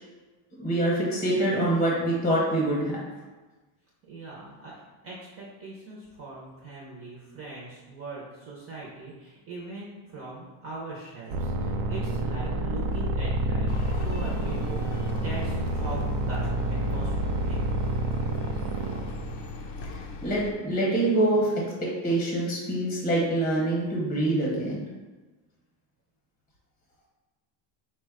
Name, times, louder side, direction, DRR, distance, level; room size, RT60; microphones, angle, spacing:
voice 1, 0.6-3.0 20.2-21.6 22.0-24.8, right 1 dB, 20° left, -3 dB, 0.8 m, -25 dB
voice 2, 4.1-17.1 17.4-17.6, right 2 dB, 30° right, -4 dB, 0.5 m, -40 dB
sound 1, 11.3-19.7, right 1 dB, 75° right, 0.7 m, -28 dB
sound 2, 13.7-20.5, left 4 dB, 60° left, 0.5 m, -40 dB
4.3 x 2.2 x 4.6 m, 1.2 s
cardioid pair, 175°, 49 cm